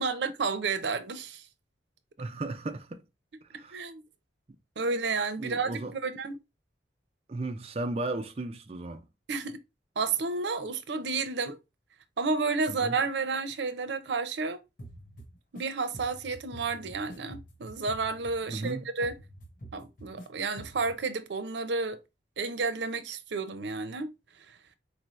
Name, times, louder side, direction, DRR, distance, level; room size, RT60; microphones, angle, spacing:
voice 1, 0.0-1.4 3.7-4.0 4.8-6.4 9.3-9.6 10.0-11.6 12.2-14.6 15.5-19.1 19.7-22.0 22.4-24.1, right 4 dB, 85° right, 0.6 m, -31 dB
voice 2, 2.2-3.0 3.5-3.8 5.4-6.0 7.3-9.0 12.7-13.0 18.5-18.8, right 2 dB, 35° right, 0.4 m, -35 dB
sound 1, 14.8-15.6 15.9-18.7 19.0-20.3 20.6-21.0, right 1 dB, 50° left, 1.0 m, -47 dB
4.3 x 2.7 x 3.0 m
head